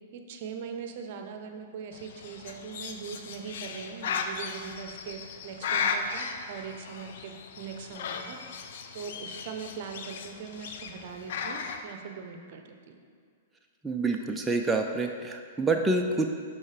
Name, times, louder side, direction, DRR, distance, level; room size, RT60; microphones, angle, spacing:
voice 1, 0.1-8.7 8.9-13.0 15.7-15.9, right 6 dB, 55° right, 5 dB, 0.7 m, -41 dB
Bird, 1.9-11.8, left 5 dB, 60° left, 0.5 m, -36 dB
voice 2, 13.8-16.3, right 3 dB, 10° right, 2 dB, 0.5 m, -27 dB
11.5 x 4.5 x 3.3 m, 2.1 s
hypercardioid pair, 110°, 0 cm